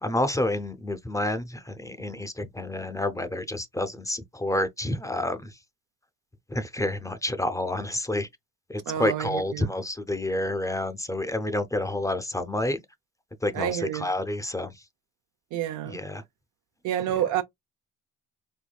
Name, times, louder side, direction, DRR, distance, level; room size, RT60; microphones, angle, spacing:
voice 1, 0.0-5.6 6.5-8.3 8.7-12.8 13.4-14.8 15.8-16.2, left 1 dB, 10° left, 0.5 m, -29 dB
voice 2, 8.9-9.7 13.5-14.1 15.5-16.0 16.8-17.4, right 11 dB, 85° right, 0.6 m, -28 dB
4.6 x 2.6 x 2.3 m
cardioid pair, 90°, 30 cm